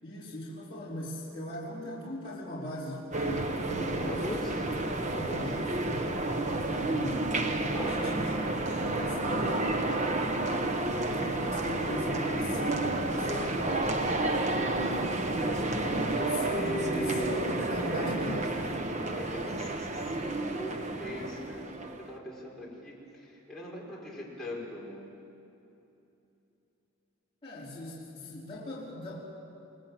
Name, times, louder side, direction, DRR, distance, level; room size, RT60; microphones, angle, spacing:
voice 1, 0.0-4.2 5.1-8.5 8.8-9.6 11.0-13.4 15.4-18.8 27.4-29.2, left 1 dB, 25° left, -8 dB, 4.6 m, -39 dB
sound 1, 3.1-22.2, right 2 dB, 35° right, 1.2 m, -31 dB
voice 2, 3.8-5.4 7.7-8.0 9.1-9.3 10.0-10.7 11.1-11.3 13.3-15.2 16.2-18.2 19.1-25.0, left 1 dB, ahead, -6 dB, 5.2 m, -40 dB
28.5 x 19.5 x 7.8 m, 2.9 s
head